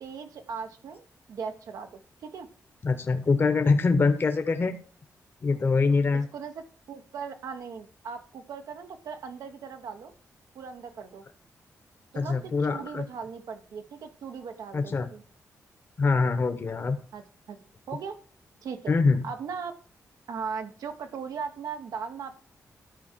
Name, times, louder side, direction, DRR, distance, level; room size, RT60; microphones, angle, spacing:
voice 1, 0.0-2.5 6.3-10.1 10.5-11.3 12.1-15.2 17.1-17.6 17.9-18.2 18.6-18.9 19.2-19.8 20.3-22.4, right 6 dB, 85° right, 6 dB, 1.0 m, -38 dB
voice 2, 2.8-4.7 5.4-6.3 12.1-13.0 14.7-15.1 16.0-17.0 18.9-19.2, left 4 dB, 40° left, 7 dB, 0.9 m, -24 dB
13.0 x 4.8 x 4.4 m, 0.43 s
wide cardioid pair, 125°, 6 cm